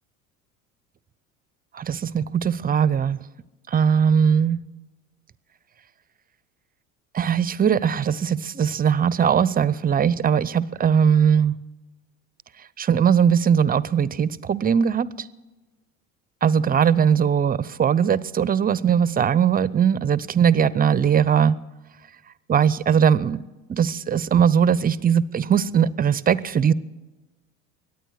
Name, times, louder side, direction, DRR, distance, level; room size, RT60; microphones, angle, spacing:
voice 1, 1.7-3.2 3.7-4.6 7.1-11.5 12.8-15.1 16.4-21.6 22.5-23.4 23.7-26.7, right 7 dB, 25° right, 0.6 m, -20 dB
23.5 x 9.3 x 6.4 m
hypercardioid pair, 75°, 38 cm